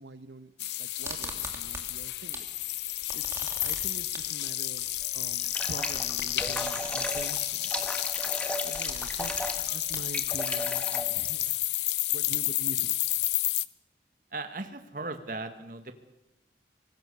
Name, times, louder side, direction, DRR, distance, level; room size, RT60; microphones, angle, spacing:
voice 1, 0.0-2.8 3.1-4.9 5.1-7.9 8.6-11.6 12.1-13.2, right 2 dB, 90° right, 13 dB, 1.2 m, -45 dB
sound 1, 0.6-13.6, left 16 dB, 80° left, 0.7 m, -31 dB
sound 2, 1.0-2.5 2.8-10.7, right 3 dB, 15° right, 2.7 m, -44 dB
sound 3, 5.0-11.6, left 1 dB, 5° left, 1.4 m, -35 dB
voice 2, 14.3-16.0, right 3 dB, 50° right, 8 dB, 1.6 m, -37 dB
24.5 x 19.5 x 6.9 m, 0.96 s
head